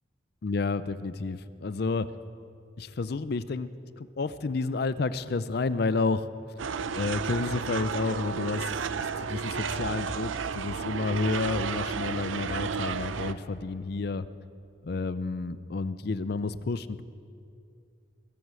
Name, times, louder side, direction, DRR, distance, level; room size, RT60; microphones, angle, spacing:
voice 1, 0.4-2.1 2.8-6.3 6.9-14.3 14.8-17.0, left 3 dB, 55° left, 14 dB, 0.5 m, -30 dB
sound 1, 6.6-13.3, right 6 dB, 85° right, 0.5 m, -32 dB
21.5 x 8.2 x 7.6 m, 2.5 s
head